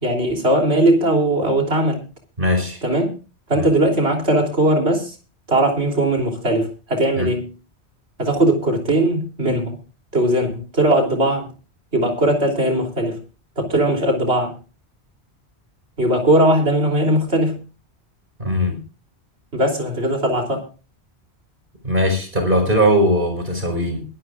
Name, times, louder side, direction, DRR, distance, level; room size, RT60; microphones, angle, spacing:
voice 1, 0.0-2.0 2.8-3.1 3.5-5.2 5.5-7.5 8.2-9.8 10.1-11.5 11.9-13.2 13.6-14.5 16.0-17.6 19.5-20.7, right 1 dB, 75° right, 2 dB, 3.5 m, -19 dB
voice 2, 2.4-2.8 3.5-3.7 7.2-7.3 18.4-18.8 21.8-24.0, equal, 50° right, 4 dB, 5.2 m, -19 dB
22.0 x 12.5 x 2.4 m, 0.34 s
omnidirectional pair, 1.1 m